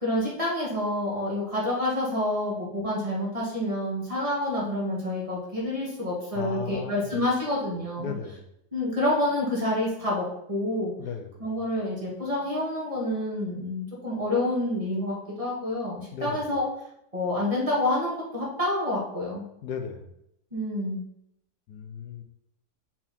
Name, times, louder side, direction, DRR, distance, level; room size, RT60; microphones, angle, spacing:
voice 1, 0.0-8.2 8.7-10.9 11.4-16.7 17.1-19.4 20.5-21.0, left 1 dB, 20° right, -5 dB, 2.0 m, -28 dB
voice 2, 6.3-7.3 8.0-8.4 11.0-11.3 16.1-16.4 19.6-20.1 21.7-22.2, left 6 dB, 90° left, 5 dB, 1.4 m, -35 dB
6.0 x 4.4 x 4.3 m, 0.77 s
omnidirectional pair, 1.7 m